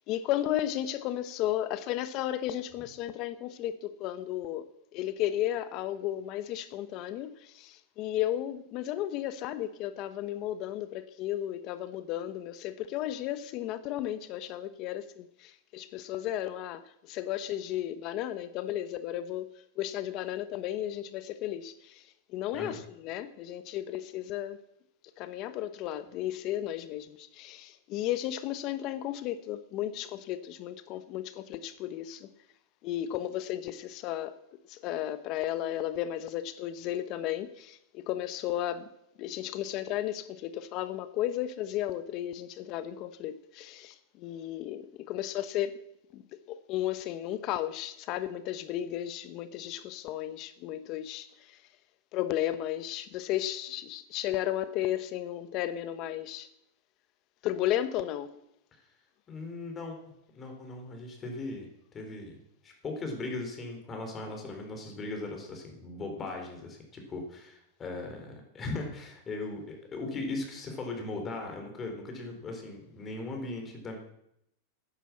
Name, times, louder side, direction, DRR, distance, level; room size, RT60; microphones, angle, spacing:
voice 1, 0.1-19.5 19.8-24.6 25.2-32.3 32.8-34.3 34.7-38.9 39.2-45.7 46.1-46.2 46.5-51.6 52.1-56.5 57.4-58.4, left 12 dB, 45° left, 1.0 m, -34 dB
voice 2, 59.3-60.0 60.3-62.4 62.6-74.0, left 2 dB, 20° left, 4.0 m, -38 dB
11.5 x 10.0 x 7.2 m
supercardioid pair, 135°, 0 cm